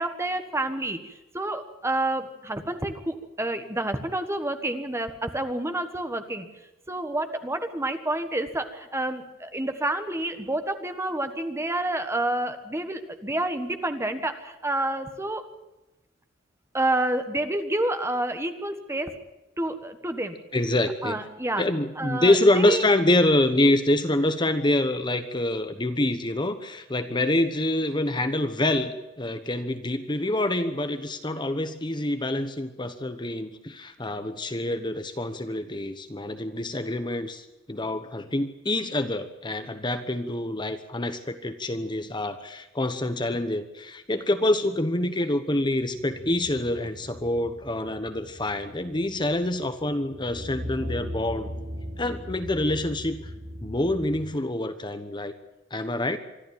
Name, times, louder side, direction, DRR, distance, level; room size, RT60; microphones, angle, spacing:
voice 1, 0.0-6.5 6.9-15.4 16.7-19.1 19.6-20.4 21.0-21.6 22.0-22.8, right 1 dB, 15° right, 8 dB, 1.4 m, -29 dB
voice 2, 20.5-21.2 21.6-51.5 52.0-53.2 53.6-55.3 55.7-56.2, left 1 dB, 25° left, 9 dB, 1.1 m, -26 dB
sound 1, 45.8-54.2, equal, 65° right, 4.8 m, -39 dB
25.0 x 12.5 x 8.9 m, 1.0 s
head